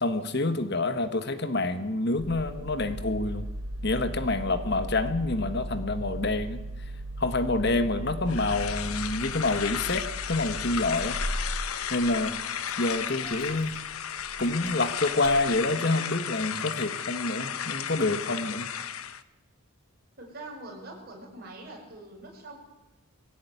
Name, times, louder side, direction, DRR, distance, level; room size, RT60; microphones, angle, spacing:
voice 1, 0.0-3.5 3.8-6.6 7.2-11.2 11.9-12.3 12.8-13.7 14.4-18.7, left 2 dB, 50° left, 10 dB, 1.4 m, -27 dB
Engine starting, 2.2-15.5, right 1 dB, 65° right, 4.3 m, -37 dB
sound 1, 8.3-19.2, left 9 dB, 80° left, 1.1 m, -34 dB
voice 2, 20.2-22.6, right 2 dB, 45° right, -1 dB, 7.3 m, -43 dB
21.5 x 17.0 x 9.4 m, 1.0 s
head